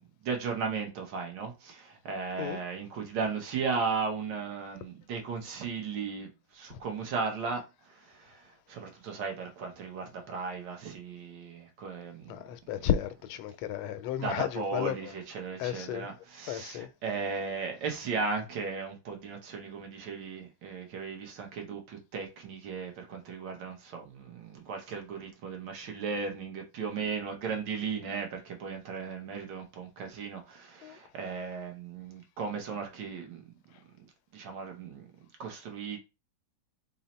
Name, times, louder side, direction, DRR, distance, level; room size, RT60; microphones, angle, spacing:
voice 1, 0.2-12.3 14.2-33.4 34.3-35.0 35.4-36.0, right 5 dB, 65° right, 1.4 m, -36 dB
voice 2, 12.3-14.9 15.6-16.1 16.5-16.9 30.8-31.0, left 10 dB, 90° left, 1.4 m, -33 dB
3.9 x 2.0 x 4.1 m
omnidirectional pair, 2.2 m